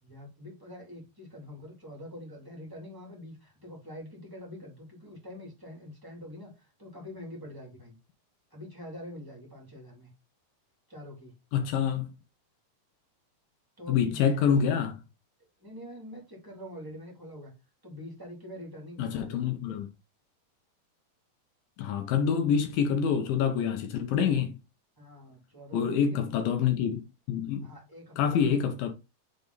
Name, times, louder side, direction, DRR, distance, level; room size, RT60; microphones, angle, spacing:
voice 1, 0.0-8.0 8.5-10.1 10.9-11.3 13.8-14.5 15.6-17.5 17.8-19.8 25.0-26.4 27.6-28.8, left 1 dB, 10° right, 1.3 m, -45 dB
voice 2, 11.5-12.1 13.9-15.0 19.0-19.9 21.8-24.6 25.7-27.7 28.2-28.9, left 7 dB, 75° left, 2.3 m, -26 dB
6.8 x 3.5 x 3.9 m
omnidirectional pair, 4.6 m